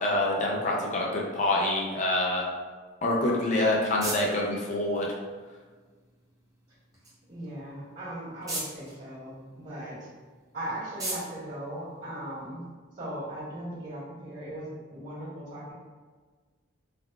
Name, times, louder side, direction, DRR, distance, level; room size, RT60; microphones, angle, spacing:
voice 1, 0.0-2.5 3.0-5.1, left 1 dB, 35° left, -2 dB, 0.4 m, -26 dB
sound 1, 3.2-12.6, right 1 dB, 15° right, 0.6 m, -42 dB
voice 2, 7.3-10.1 10.5-12.6 12.9-15.7, right 1 dB, 55° right, -14 dB, 1.5 m, -38 dB
3.4 x 2.3 x 2.3 m, 1.4 s
head